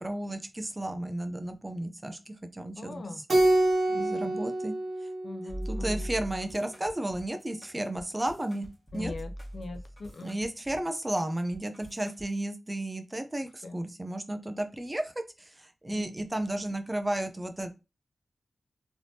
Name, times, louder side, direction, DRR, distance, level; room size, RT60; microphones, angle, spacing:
voice 1, 0.0-3.1 3.9-4.7 5.7-8.7 8.9-9.1 10.2-15.1 15.4-17.7, right 1 dB, 20° right, 0.4 m, -33 dB
voice 2, 2.8-3.2 3.9-4.3 5.2-6.1 8.9-10.4 13.6-13.8 15.9-16.1, left 3 dB, 65° left, 0.5 m, -41 dB
Keyboard (musical), 3.3-5.9, right 1 dB, 55° right, 0.8 m, -26 dB
sound 1, 5.5-12.3, equal, 10° left, 1.4 m, -41 dB
3.3 x 2.9 x 2.7 m
wide cardioid pair, 115°, 0 cm